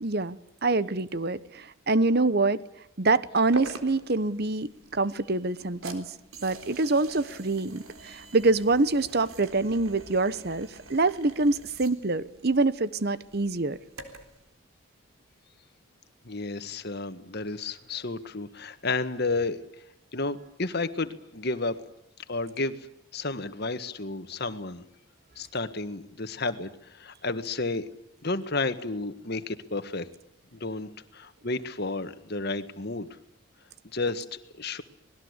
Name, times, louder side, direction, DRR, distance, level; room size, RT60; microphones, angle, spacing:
voice 1, 0.0-2.6 3.0-6.1 6.4-13.8, right 3 dB, 50° right, 16 dB, 1.0 m, -25 dB
sound 1, 3.5-14.4, right 2 dB, 85° right, 3.9 m, -45 dB
voice 2, 16.3-19.6 20.1-21.8 22.3-22.8 23.1-24.8 25.4-27.9 28.2-30.1 30.5-33.1 33.9-34.8, left 3 dB, 50° left, 10 dB, 1.6 m, -32 dB
26.5 x 20.0 x 8.2 m, 0.76 s
head